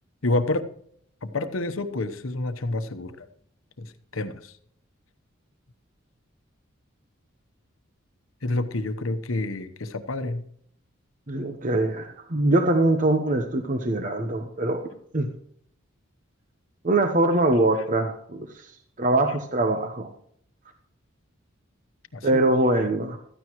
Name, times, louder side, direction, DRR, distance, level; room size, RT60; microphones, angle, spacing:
voice 1, 0.2-0.7 1.2-3.3 3.8-4.5 8.4-10.5 22.1-22.4, left 2 dB, 80° left, 10 dB, 1.0 m, -28 dB
voice 2, 11.3-14.8 15.1-15.3 16.8-18.5 19.0-20.1 22.2-23.2, right 2 dB, 40° right, 6 dB, 1.0 m, -23 dB
15.5 x 13.5 x 3.1 m, 0.65 s
head